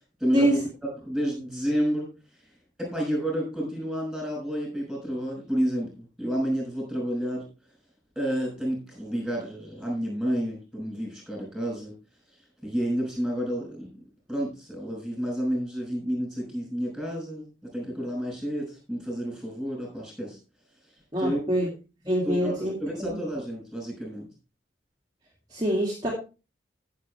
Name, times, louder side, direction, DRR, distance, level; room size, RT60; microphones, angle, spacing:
voice 1, 0.2-2.1 2.8-7.4 8.2-11.9 12.6-13.9 14.3-20.4 21.2-21.7 22.2-24.3, equal, ahead, -1 dB, 6.1 m, -30 dB
voice 2, 21.1-21.7 22.0-22.7 23.0-23.2 25.5-26.1, right 1 dB, 20° right, -4 dB, 2.4 m, -24 dB
14.0 x 7.6 x 3.3 m, 0.31 s
head